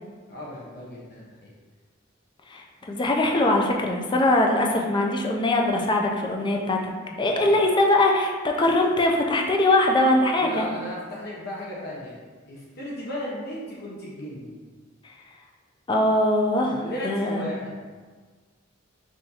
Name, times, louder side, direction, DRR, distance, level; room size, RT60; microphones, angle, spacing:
voice 1, 0.3-1.5 7.3-7.6 10.4-12.2 12.5-14.5 16.6-17.7, left 1 dB, 50° left, -6 dB, 0.7 m, -35 dB
voice 2, 2.5-6.8 7.2-10.7 15.9-17.5, left 1 dB, 25° left, 1 dB, 0.4 m, -22 dB
5.6 x 2.6 x 2.8 m, 1.5 s
head